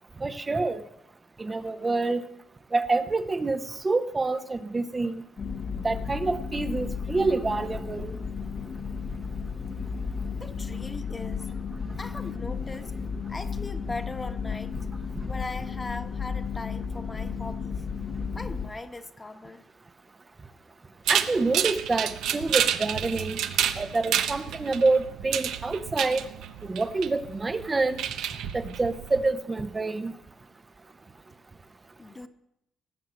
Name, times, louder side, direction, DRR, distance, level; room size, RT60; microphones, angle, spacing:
voice 1, 0.2-0.8 1.4-2.3 2.7-5.2 5.8-8.1 21.1-23.4 23.8-26.2 26.6-28.0 28.5-30.1, right 3 dB, 25° right, 8 dB, 0.8 m, -27 dB
sound 1, 5.4-18.7, left 5 dB, 50° left, 1.1 m, -33 dB
voice 2, 10.4-11.5 12.0-12.9 13.3-14.8 15.2-17.8 18.3-19.6 32.0-32.3, left 2 dB, 20° left, 7 dB, 1.3 m, -39 dB
sound 2, 21.1-29.3, right 9 dB, 85° right, 1.0 m, -30 dB
19.0 x 7.5 x 7.7 m, 0.82 s
cardioid pair, 90°, 0 cm